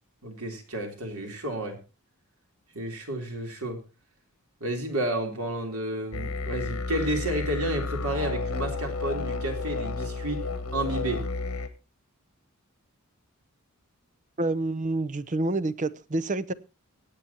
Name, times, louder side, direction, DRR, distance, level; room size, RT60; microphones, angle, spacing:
voice 1, 0.2-1.8 2.7-3.8 4.6-10.4 10.7-11.2, right 1 dB, 85° right, 3.6 m, -31 dB
sound 1, 6.1-11.7, left 3 dB, 75° left, 1.5 m, -31 dB
voice 2, 14.4-16.5, right 2 dB, 35° right, 0.7 m, -28 dB
24.0 x 8.5 x 2.9 m
head